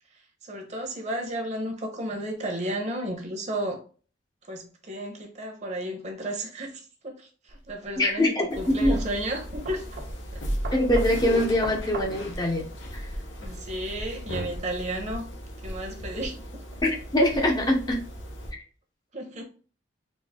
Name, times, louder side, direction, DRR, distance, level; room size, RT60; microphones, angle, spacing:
voice 1, 0.1-3.8 4.4-9.9 10.3-10.4 13.4-15.3 15.6-16.4 19.1-19.4, right 1 dB, 40° right, 1.0 m, -33 dB
sound 1, 7.5-13.2, right 3 dB, 65° right, 1.0 m, -41 dB
voice 2, 8.0-9.0 10.7-12.6 12.9-13.1 16.8-18.0 18.5-18.6, left 1 dB, 20° left, 0.7 m, -23 dB
sound 2, 8.5-18.5, equal, 90° left, 0.9 m, -35 dB
4.1 x 2.7 x 3.6 m
head